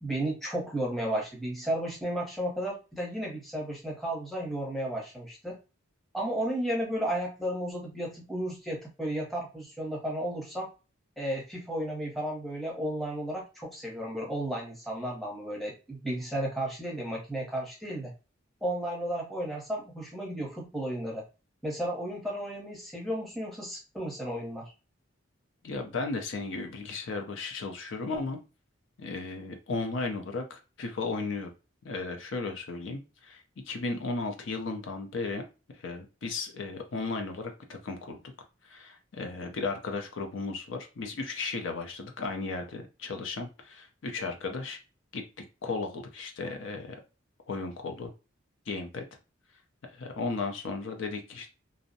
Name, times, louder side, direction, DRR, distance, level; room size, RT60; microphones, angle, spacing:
voice 1, 0.0-5.6 6.1-10.7 11.2-18.1 18.6-21.2 21.6-24.7, right 1 dB, ahead, -3 dB, 0.7 m, -33 dB
voice 2, 25.6-28.4 29.0-31.5 31.8-35.4 35.8-38.2 38.6-44.8 45.1-45.2 45.6-47.0 47.5-48.1 48.7-49.0 49.9-51.5, left 3 dB, 70° left, 5 dB, 0.5 m, -35 dB
2.6 x 2.0 x 2.6 m, 0.31 s
head